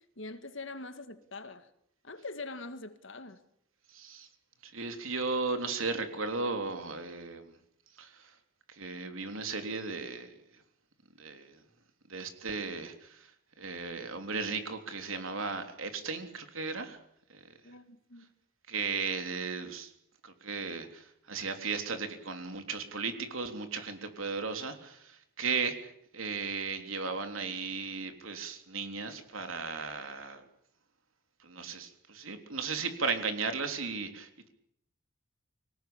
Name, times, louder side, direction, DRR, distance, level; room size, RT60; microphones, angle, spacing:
voice 1, 0.2-1.7 2.0-3.4 17.6-18.3, left 3 dB, 65° left, 2.1 m, -43 dB
voice 2, 3.9-4.3 4.6-7.6 8.0-8.4 8.7-10.3 11.2-11.6 12.1-13.3 13.6-17.0 17.3-17.5 18.7-19.9 20.2-30.4 31.4-34.5, right 4 dB, 75° right, 3.5 m, -36 dB
25.5 x 18.5 x 8.8 m
head